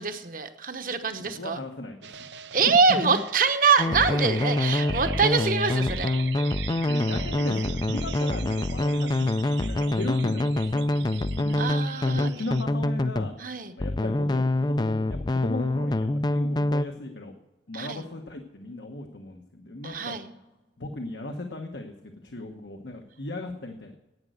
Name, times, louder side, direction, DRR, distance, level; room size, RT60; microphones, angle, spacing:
voice 1, 0.0-1.6 2.5-6.1 11.6-12.3 13.4-13.7 17.7-18.0 19.8-20.3, right 5 dB, 50° right, 8 dB, 1.0 m, -24 dB
voice 2, 1.2-2.2 3.0-3.2 4.3-4.7 5.1-5.2 6.8-11.7 12.0-13.3 13.8-17.3 17.7-20.2 20.8-21.9 22.2-24.0, left 2 dB, 80° left, 3 dB, 1.2 m, -37 dB
sound 1, 2.0-12.6, right 7 dB, 75° right, 0.5 m, -40 dB
sound 2, 3.8-13.3 13.8-16.9, left 2 dB, 25° left, 0.4 m, -26 dB
10.5 x 9.3 x 7.9 m, 1.0 s
head